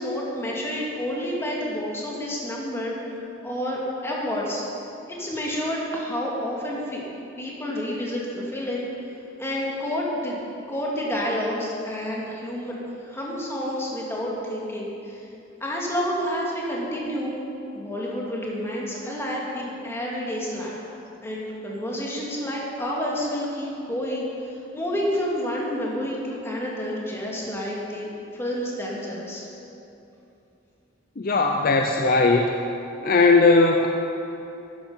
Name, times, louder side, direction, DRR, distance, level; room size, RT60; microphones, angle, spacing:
voice 1, 0.0-2.9 3.4-4.6 5.1-7.0 7.4-8.9 9.4-10.4 10.7-12.7 13.0-15.2 15.6-17.4 17.7-20.7 21.2-24.3 24.7-29.4, equal, 15° left, -4 dB, 2.2 m, -29 dB
voice 2, 31.2-32.5 33.0-33.9, left 3 dB, 50° left, 3 dB, 0.6 m, -18 dB
12.5 x 9.6 x 5.5 m, 2.8 s
head